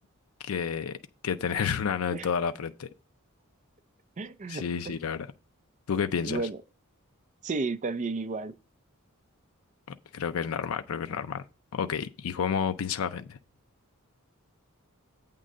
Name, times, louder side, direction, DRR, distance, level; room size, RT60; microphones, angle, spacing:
voice 1, 0.4-1.0 1.2-2.9 4.5-5.3 5.9-6.4 10.1-11.4 11.7-13.4, left 7 dB, 80° left, 0.4 m, -30 dB
voice 2, 4.2-5.0 6.2-6.6 7.4-8.5, right 3 dB, 35° right, 0.4 m, -33 dB
8.3 x 3.7 x 6.4 m
head